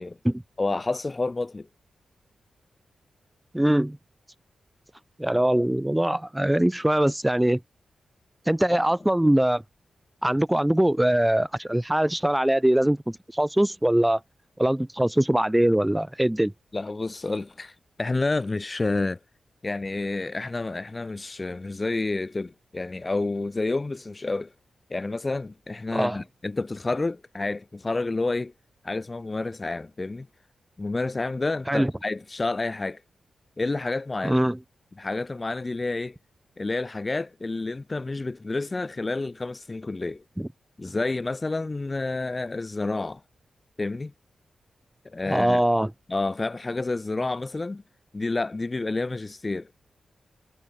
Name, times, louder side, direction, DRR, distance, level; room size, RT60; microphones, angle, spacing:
voice 1, 0.6-1.7 16.7-19.2 19.6-24.5 24.9-28.5 28.8-30.3 30.8-33.0 33.6-34.4 35.0-36.2 36.6-40.2 40.8-43.2 43.8-44.1 45.0-45.6 46.1-47.8 48.1-49.7, left 3 dB, 35° left, 0.5 m, -29 dB
voice 2, 3.5-4.0 5.2-7.6 8.5-9.6 10.2-14.2 14.6-16.5 25.9-26.2 31.7-31.9 34.2-34.6 40.4-40.5 45.3-45.9, right 1 dB, 10° right, 1.3 m, -22 dB
cardioid pair, 50°, 0 cm